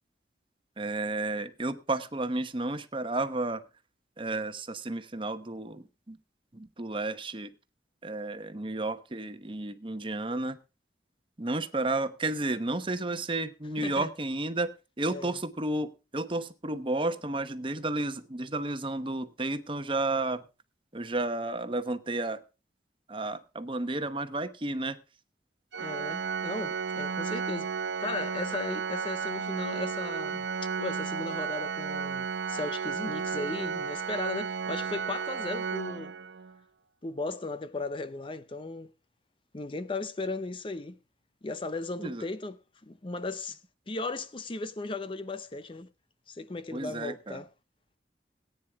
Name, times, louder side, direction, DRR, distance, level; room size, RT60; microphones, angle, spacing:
voice 1, 0.8-3.6 4.2-6.2 6.5-7.5 8.0-10.6 11.4-20.4 20.9-22.4 23.1-25.0 42.0-42.2 46.7-47.4, right 2 dB, 30° right, 1.0 m, -32 dB
voice 2, 13.8-14.1 15.1-15.4 25.8-27.7 28.0-30.5 30.8-36.1 37.0-38.9 39.5-41.0 41.4-42.6 42.8-43.6 43.9-45.9 46.3-47.5, left 2 dB, 30° left, 0.6 m, -36 dB
Organ, 25.7-36.6, right 6 dB, 75° right, 0.7 m, -33 dB
18.0 x 9.5 x 3.5 m
head